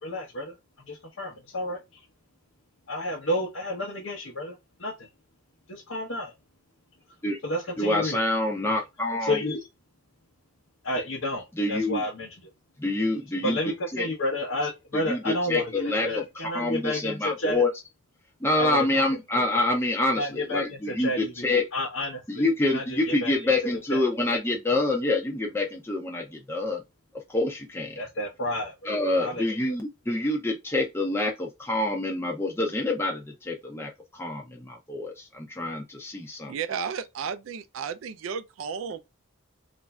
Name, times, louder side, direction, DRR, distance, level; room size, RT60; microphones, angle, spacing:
voice 1, 0.0-0.5 0.9-2.0 2.9-4.5 4.8-5.1 5.7-6.3 7.4-8.2 9.2-9.7 10.8-12.3 13.4-17.6 18.6-19.2 20.2-21.5 21.7-24.1 28.0-29.4, left 1 dB, 65° left, 0.8 m, -31 dB
voice 2, 7.8-9.4 11.5-12.0 12.8-13.6 13.9-14.1 14.9-16.2 16.5-17.7 18.4-21.6 22.3-26.8 27.3-28.0 28.9-36.5, left 2 dB, 10° left, 0.5 m, -27 dB
voice 3, 36.5-39.0, right 6 dB, 70° right, 0.4 m, -33 dB
3.1 x 2.5 x 2.2 m
head